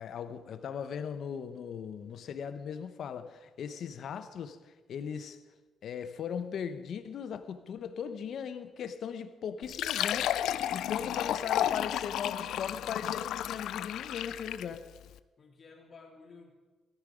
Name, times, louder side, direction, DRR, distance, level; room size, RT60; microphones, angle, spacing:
voice 1, 0.0-5.4 5.8-10.4 10.7-14.8, left 7 dB, 65° left, 1.0 m, -38 dB
Fill (with liquid), 9.6-14.8, left 11 dB, 80° left, 0.4 m, -32 dB
voice 2, 15.4-16.5, left 4 dB, 40° left, 3.4 m, -55 dB
16.5 x 13.5 x 5.1 m
cardioid pair, 90°, 0 cm